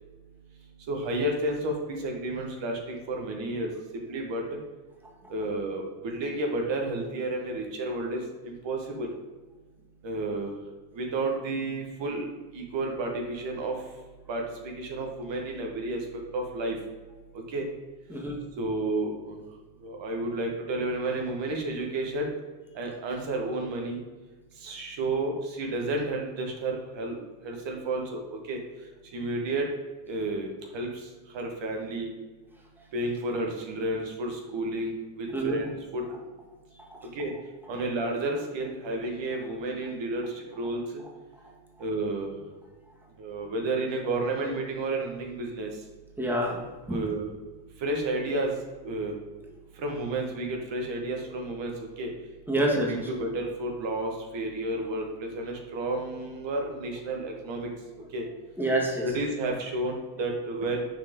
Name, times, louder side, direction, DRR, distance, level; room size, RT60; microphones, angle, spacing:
voice 1, 0.9-4.6 5.3-9.1 10.0-10.5 10.9-12.3 12.5-13.8 14.3-16.1 16.3-16.7 17.3-17.6 18.6-19.4 19.8-22.3 22.7-24.0 24.6-28.2 28.5-28.6 29.1-29.7 30.0-32.1 32.9-35.6 35.9-36.1 37.1-37.3 37.7-41.0 41.8-42.3 43.2-45.7 46.9-47.3 47.8-48.5 48.8-49.1 49.8-52.1 52.9-57.7 58.1-58.2 59.0-60.9, right 2 dB, 80° right, 1 dB, 1.2 m, -31 dB
voice 2, 18.1-18.4 35.3-35.6 36.9-37.0 46.2-46.6 46.9-47.0 52.5-53.1 58.6-59.1, right 1 dB, 5° right, -2 dB, 1.5 m, -27 dB
6.1 x 4.3 x 3.6 m, 1.3 s
cardioid pair, 85°, 44 cm